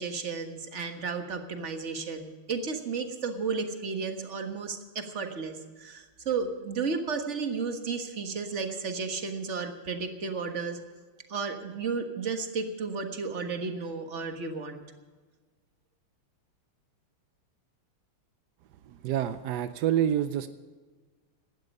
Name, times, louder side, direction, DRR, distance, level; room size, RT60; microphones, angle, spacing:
voice 1, 0.0-10.8 11.3-14.8, right 5 dB, 35° right, 6 dB, 1.6 m, -33 dB
voice 2, 18.9-20.5, right 10 dB, 80° right, 11 dB, 0.9 m, -27 dB
17.5 x 12.5 x 5.4 m, 1.4 s
omnidirectional pair, 2.4 m